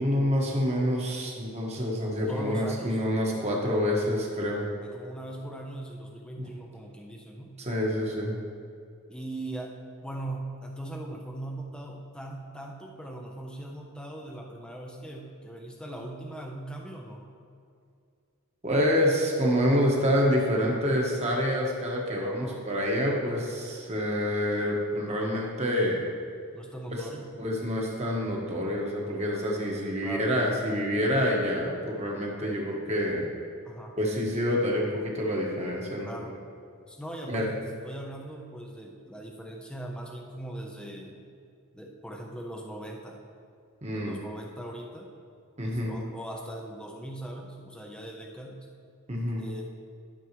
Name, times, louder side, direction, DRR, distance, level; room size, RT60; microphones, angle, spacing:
voice 1, 0.0-4.6 6.4-6.5 7.6-8.4 18.6-26.0 26.9-27.1 27.4-33.3 34.0-36.4 37.3-37.5 43.8-44.2 45.6-46.0 49.1-49.4, equal, 30° right, -2 dB, 1.4 m, -27 dB
voice 2, 2.3-3.0 4.8-7.5 9.1-9.7 10.0-17.2 22.4-22.6 26.5-27.3 30.0-30.3 33.6-33.9 36.0-36.3 36.9-41.2 41.7-43.2 43.9-45.1 45.6-48.7 49.4-49.6, right 1 dB, 5° left, 0 dB, 0.7 m, -40 dB
12.5 x 6.2 x 3.1 m, 2.3 s
head